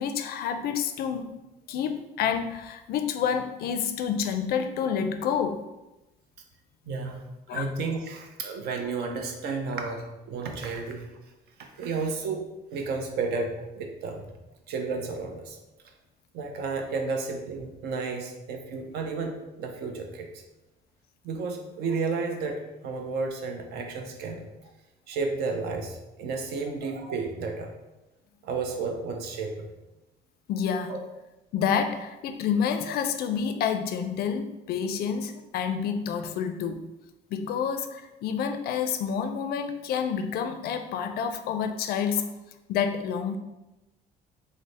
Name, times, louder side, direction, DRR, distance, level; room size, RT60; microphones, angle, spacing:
voice 1, 0.0-1.3 1.7-5.6 7.5-7.7 30.5-31.0 31.5-36.8 37.3-42.3 42.7-43.4, left 7 dB, 65° left, 7 dB, 0.4 m, -28 dB
voice 2, 6.9-7.2 7.5-11.1 11.6-12.4 12.7-14.3 14.7-15.6 16.3-20.3 21.2-24.4 25.1-27.7 28.4-29.7 30.9-31.0, right 4 dB, 75° right, 3 dB, 0.6 m, -32 dB
3.3 x 2.0 x 4.0 m, 1.0 s
cardioid pair, 110°, 17 cm